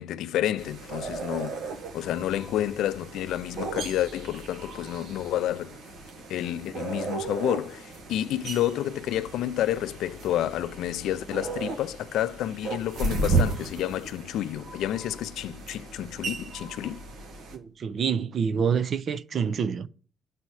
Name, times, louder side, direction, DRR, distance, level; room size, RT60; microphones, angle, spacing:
voice 1, 0.0-1.6 1.9-5.8 6.3-17.0, left 12 dB, 85° left, 0.4 m, -30 dB
sound 1, 0.6-17.6, right 3 dB, 80° right, 1.6 m, -34 dB
voice 2, 17.5-19.9, right 7 dB, 55° right, 0.6 m, -27 dB
8.4 x 4.1 x 6.3 m
cardioid pair, 90°, 0 cm